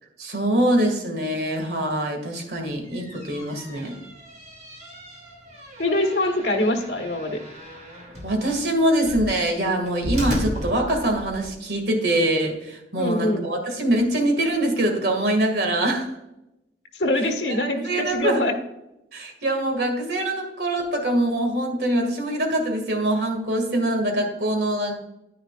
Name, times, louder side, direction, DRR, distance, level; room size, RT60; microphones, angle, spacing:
voice 1, 0.2-3.9 8.2-16.1 17.8-18.5 19.1-24.9, right 1 dB, 65° right, 3 dB, 2.1 m, -24 dB
sound 1, 2.7-11.5, equal, 45° right, 2.8 m, -35 dB
voice 2, 5.8-7.4 13.0-13.5 16.9-18.5, left 1 dB, 80° left, 2 dB, 1.4 m, -24 dB
10.0 x 10.0 x 2.4 m, 0.89 s
head